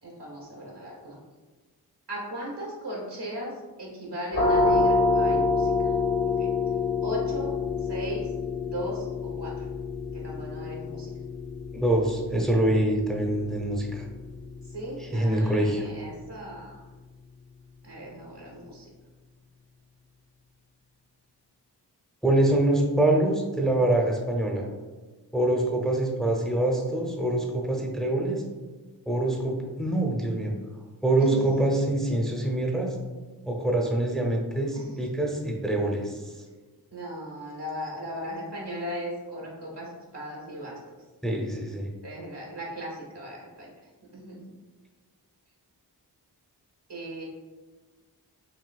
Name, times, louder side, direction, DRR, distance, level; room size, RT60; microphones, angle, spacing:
voice 1, 0.0-1.2 2.1-5.9 6.2-6.5 7.0-7.5 7.8-8.3 8.7-9.7 10.1-11.1 14.7-16.8 17.8-18.9 31.2-31.5 34.7-35.0 36.9-40.8 42.0-43.7 44.1-44.4 46.9-47.2, right 1 dB, 70° right, -3 dB, 1.4 m, -37 dB
sound 1, 4.3-15.8, left 3 dB, 60° left, 0.9 m, -28 dB
voice 2, 11.7-14.1 15.0-15.8 22.2-24.6 25.3-28.4 29.1-30.5 31.0-32.9 33.5-36.3 41.2-41.9, right 1 dB, ahead, 0 dB, 0.7 m, -25 dB
6.0 x 2.6 x 2.4 m, 1.2 s
cardioid pair, 45°, 42 cm